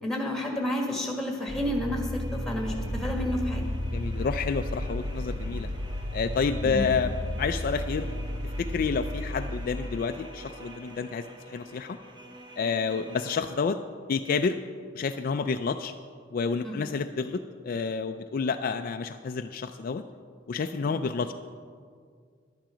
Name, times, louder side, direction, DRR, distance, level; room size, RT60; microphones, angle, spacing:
voice 1, 0.0-3.6 6.6-6.9 16.6-16.8, left 1 dB, ahead, 0 dB, 1.6 m, -30 dB
sound 1, 1.5-13.4, left 1 dB, 25° right, 0.9 m, -37 dB
Mechanical fan, 2.7-9.6, left 1 dB, 70° right, 1.7 m, -36 dB
voice 2, 3.9-5.7 6.1-8.1 8.6-12.0 12.6-13.8 14.1-14.6 14.9-15.9 16.3-20.0 20.5-21.3, left 5 dB, 45° left, 8 dB, 0.3 m, -29 dB
11.5 x 10.5 x 5.0 m, 2.1 s
head